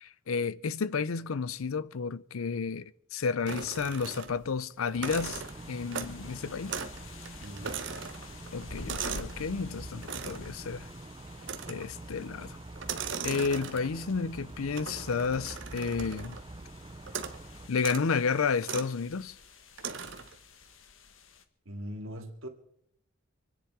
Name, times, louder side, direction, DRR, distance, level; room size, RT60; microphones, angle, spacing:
voice 1, 0.0-5.4 5.7-6.7 8.5-10.8 11.7-12.6 13.2-16.4 17.7-19.3, left 5 dB, 90° left, 0.6 m, -31 dB
sound 1, 3.5-4.5 4.9-6.3 6.7-7.0 7.3-9.4 10.0-10.5 11.4-12.0 12.8-14.1 14.8-16.5 17.1-17.4 17.8-18.1 18.6-18.9 19.8-20.4, right 6 dB, 60° right, 1.2 m, -39 dB
sound 2, 4.9-17.7, right 2 dB, 25° right, 0.6 m, -46 dB
sound 3, 5.0-21.4, left 3 dB, 70° left, 1.3 m, -51 dB
voice 2, 7.4-7.8 21.7-22.5, equal, 80° right, 2.3 m, -40 dB
25.5 x 10.0 x 4.8 m
head